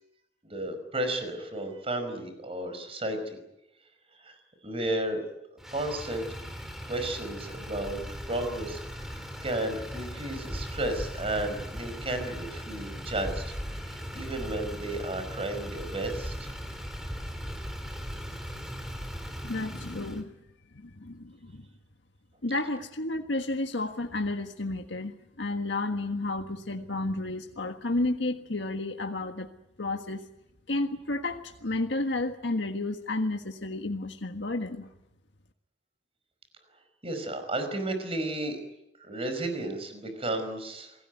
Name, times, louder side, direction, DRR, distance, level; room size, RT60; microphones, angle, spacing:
voice 1, 0.4-3.4 4.2-4.4 4.6-5.2 5.7-6.3 6.8-8.0 8.3-13.5 13.8-16.5 37.0-38.6 39.0-40.9, right 1 dB, 35° right, 8 dB, 5.2 m, -33 dB
Motor vehicle (road), 5.6-20.2, equal, ahead, 3.4 m, -38 dB
voice 2, 19.4-20.3 20.7-21.7 22.4-29.5 29.8-30.2 30.7-34.9, left 2 dB, 90° left, 4 dB, 1.6 m, -31 dB
27.5 x 18.5 x 9.4 m, 0.90 s
head